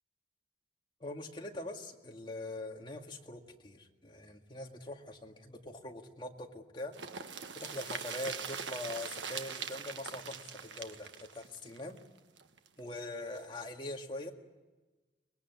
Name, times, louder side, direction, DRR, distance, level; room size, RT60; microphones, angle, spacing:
voice 1, 1.0-6.9 7.6-12.0 12.8-14.3, left 2 dB, 25° left, 2 dB, 2.1 m, -43 dB
sound 1, 6.9-12.7 13.0-13.1 13.4-13.5, right 6 dB, 80° right, 1.4 m, -42 dB
24.0 x 21.5 x 9.6 m, 1.2 s
head